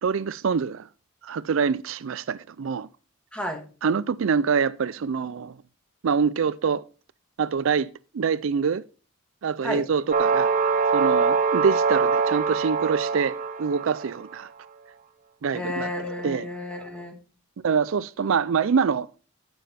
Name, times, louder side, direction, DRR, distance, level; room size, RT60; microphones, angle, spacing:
voice 1, 0.0-0.9 1.2-2.9 3.8-5.6 6.0-6.8 7.4-8.8 9.4-10.5 10.9-14.5 15.4-15.9 16.2-16.5 17.6-19.1, right 6 dB, 65° right, 0.4 m, -25 dB
voice 2, 3.3-3.6 9.6-9.8 15.5-17.2, left 1 dB, 5° left, 1.8 m, -32 dB
sound 1, 10.1-14.2, right 5 dB, 40° right, 1.1 m, -23 dB
14.5 x 7.0 x 4.3 m
head